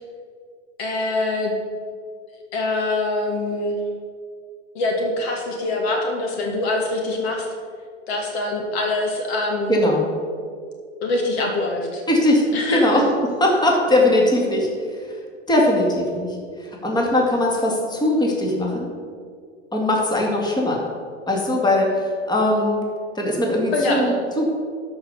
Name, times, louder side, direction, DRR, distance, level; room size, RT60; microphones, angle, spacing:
voice 1, 0.8-1.5 2.5-3.8 4.7-7.5 8.1-9.9 11.0-12.0 12.5-13.1 23.7-24.1, left 2 dB, 60° left, 0 dB, 2.5 m, -24 dB
voice 2, 9.7-10.1 12.1-12.4 12.7-13.0 13.4-15.2 15.5-18.9 19.7-20.8 21.3-22.9 23.1-24.5, left 1 dB, 10° left, -1 dB, 2.3 m, -20 dB
12.5 x 5.3 x 6.8 m, 2.1 s
figure-of-eight pair, 85°, 36 cm